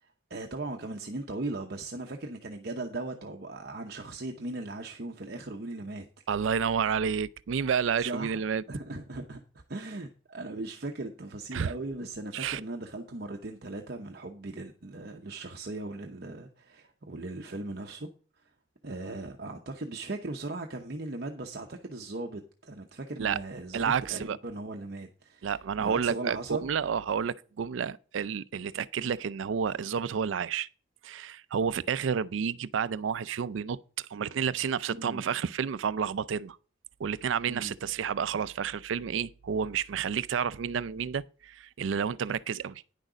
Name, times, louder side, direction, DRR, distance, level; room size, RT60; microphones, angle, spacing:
voice 1, 0.0-6.1 8.0-8.4 8.7-9.4 9.7-18.1 18.4-18.5 18.8-25.5 25.8-26.7 34.9-35.2 37.5-37.7, right 2 dB, 55° right, 0.8 m, -38 dB
voice 2, 6.3-8.6 11.5-11.7 12.3-12.6 23.2-23.4 23.7-24.4 25.4-30.7 31.0-36.6 37.0-42.8, right 7 dB, 80° right, 0.4 m, -30 dB
9.9 x 6.4 x 4.9 m
head